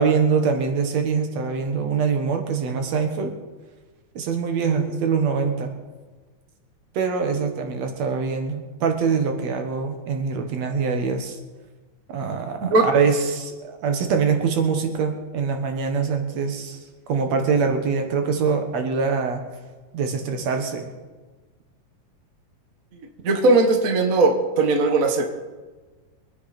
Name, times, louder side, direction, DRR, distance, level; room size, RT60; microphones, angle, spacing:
voice 1, 0.0-3.3 4.2-5.7 6.9-11.4 12.1-16.8 17.1-19.4 19.9-20.9, right 5 dB, 60° right, 5 dB, 2.3 m, -24 dB
voice 2, 23.2-25.2, right 3 dB, 80° right, 4 dB, 0.7 m, -18 dB
24.0 x 9.9 x 4.3 m, 1.3 s
omnidirectional pair, 3.9 m